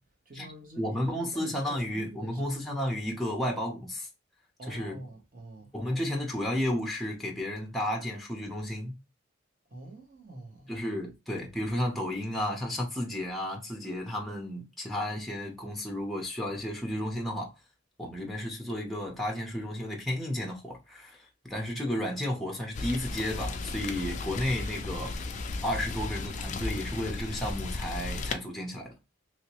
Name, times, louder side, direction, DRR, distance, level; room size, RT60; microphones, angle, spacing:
voice 1, 0.3-2.4 4.6-5.7 9.7-10.7, right 2 dB, 40° right, 1.1 m, -46 dB
voice 2, 0.8-4.1 4.7-5.0 5.7-8.9 10.7-17.5 18.0-25.2 25.6-29.0, left 1 dB, ahead, 0.7 m, -33 dB
Rain, 22.7-28.3, left 3 dB, 35° left, 0.3 m, -35 dB
3.1 x 2.8 x 2.9 m
head